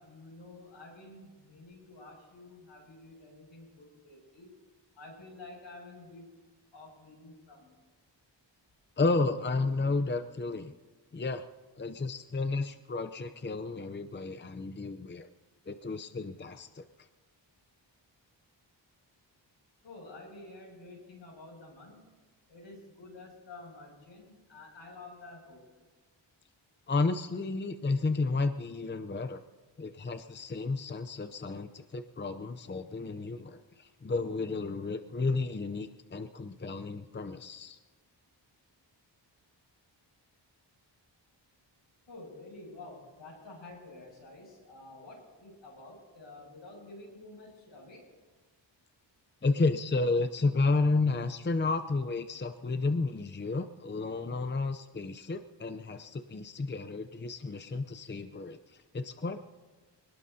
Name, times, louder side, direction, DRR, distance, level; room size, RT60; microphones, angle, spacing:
voice 1, 0.0-4.5 5.0-6.3 6.7-7.7 19.8-22.1 22.5-25.6 42.1-48.0, left 2 dB, 80° left, -1 dB, 7.1 m, -50 dB
voice 2, 9.0-10.7 11.1-11.4 11.8-15.3 15.7-16.8 26.9-29.4 29.8-37.8 49.4-59.4, left 3 dB, 25° left, 9 dB, 0.7 m, -32 dB
26.0 x 19.5 x 2.8 m, 1.3 s
wide cardioid pair, 85°, 45 cm